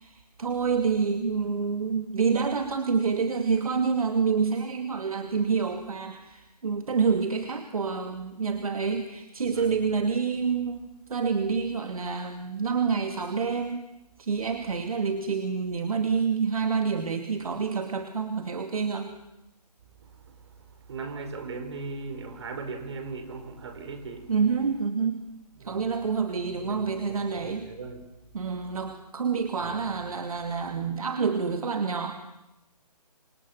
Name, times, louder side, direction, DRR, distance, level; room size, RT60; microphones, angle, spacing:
voice 1, 0.0-13.8 14.2-19.1 24.3-25.3 25.6-27.7 28.3-32.2, right 5 dB, 60° right, 2.4 m, -28 dB
voice 2, 9.5-9.8 20.2-24.3 25.5-25.9 26.5-28.0 28.5-28.6 29.6-30.0, right 4 dB, 40° right, 4.9 m, -39 dB
27.5 x 27.0 x 7.3 m
figure-of-eight pair, 155°, 21 cm